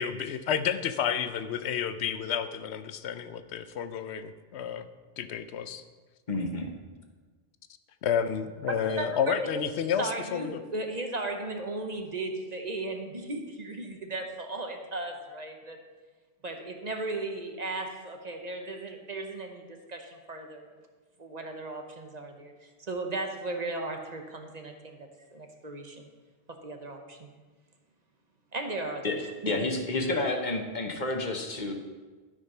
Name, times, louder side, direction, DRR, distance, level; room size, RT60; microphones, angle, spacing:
voice 1, 0.0-4.9 5.2-5.8 8.0-10.6, left 8 dB, 80° left, 11 dB, 0.9 m, -30 dB
voice 2, 6.3-6.7 29.0-29.2 29.5-31.7, left 2 dB, 45° left, 3 dB, 1.2 m, -30 dB
voice 3, 8.7-15.8 16.4-19.6 19.9-20.7 21.2-22.5 22.9-25.0 25.3-26.1 26.5-27.3 28.5-29.1, right 2 dB, 40° right, 4 dB, 1.0 m, -36 dB
12.5 x 5.2 x 5.5 m, 1.4 s
omnidirectional pair, 1.1 m